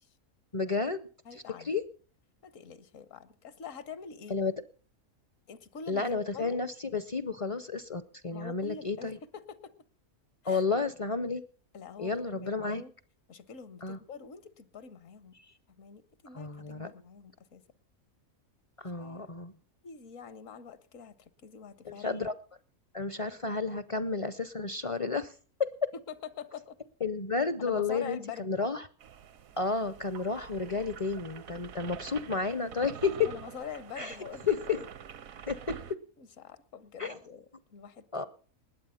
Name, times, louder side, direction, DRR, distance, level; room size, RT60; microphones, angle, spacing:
voice 1, 0.5-1.1 1.6-1.8 4.3-4.5 5.9-9.2 10.4-11.4 12.0-12.8 13.8-14.0 15.4-15.5 16.3-16.9 18.8-19.5 21.8-22.3 22.9-25.3 25.6-25.7 27.0-28.9 29.6-33.3 34.0-34.2 34.5-34.8 35.5-36.0 37.0-37.2 38.1-38.3, left 4 dB, 40° left, 0.5 m, -31 dB
voice 2, 1.2-1.7 2.4-4.4 5.5-6.6 8.3-9.7 10.4-10.6 11.7-12.9 13.3-15.4 15.7-17.6 18.9-19.3 19.8-22.2 26.1-26.8 27.6-28.5 33.2-34.8 36.2-38.3, left 6 dB, 70° left, 1.3 m, -45 dB
sound 1, 29.0-35.9, right 8 dB, 75° right, 1.3 m, -46 dB
20.0 x 8.2 x 5.6 m
omnidirectional pair, 1.5 m